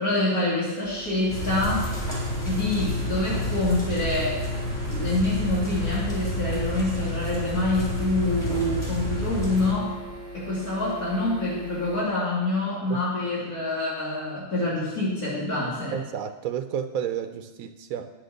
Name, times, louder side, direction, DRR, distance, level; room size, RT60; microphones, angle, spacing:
voice 1, 0.0-1.9 2.4-4.4 4.9-9.9 10.3-16.0, left 2 dB, 80° left, -8 dB, 3.3 m, -26 dB
sound 1, 0.8-12.0, right 1 dB, 60° left, 2.2 m, -41 dB
sound 2, 1.3-9.7, left 1 dB, 30° left, 3.8 m, -29 dB
voice 2, 15.9-18.1, right 8 dB, 75° right, 7 dB, 1.0 m, -31 dB
10.5 x 7.7 x 6.6 m, 1.1 s
omnidirectional pair, 1.5 m